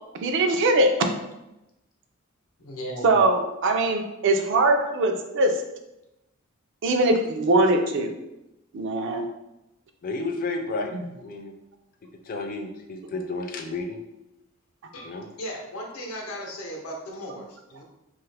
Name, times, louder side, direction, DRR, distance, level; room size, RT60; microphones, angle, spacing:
voice 1, 0.2-0.9 3.0-5.6 6.8-8.1 8.7-9.2 10.9-11.0, right 2 dB, 60° right, 5 dB, 0.4 m, -21 dB
voice 2, 2.6-3.2 14.9-15.1 15.4-17.8, equal, 80° left, 0 dB, 0.7 m, -36 dB
voice 3, 10.0-11.5 12.2-14.0 15.0-15.3, left 3 dB, 40° left, 4 dB, 0.4 m, -32 dB
2.8 x 2.4 x 3.3 m, 0.91 s
head